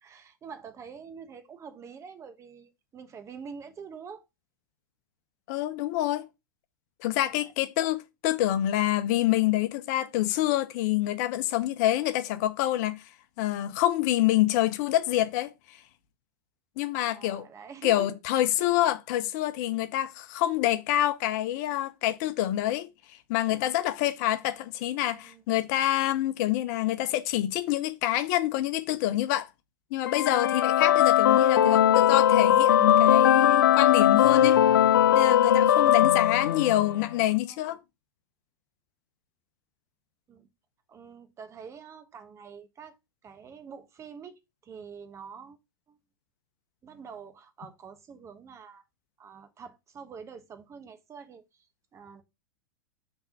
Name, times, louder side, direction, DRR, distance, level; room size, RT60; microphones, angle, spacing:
voice 1, 0.0-4.2 7.2-7.5 8.3-8.4 17.1-18.1 18.6-18.8 25.2-25.4 37.3-37.6 40.3-40.5 40.9-43.0 43.2-45.6 46.8-48.8 49.2-51.4 51.9-52.2, right 6 dB, 25° right, 1.2 m, -46 dB
voice 2, 5.5-6.2 7.0-13.0 13.4-15.5 16.8-17.5 17.8-22.9 23.3-29.5 29.9-34.6 35.1-37.8, left 14 dB, 55° left, 0.8 m, -27 dB
sound 1, 30.1-37.0, left 11 dB, 75° left, 0.4 m, -20 dB
5.8 x 3.5 x 5.7 m
hypercardioid pair, 100°, 11 cm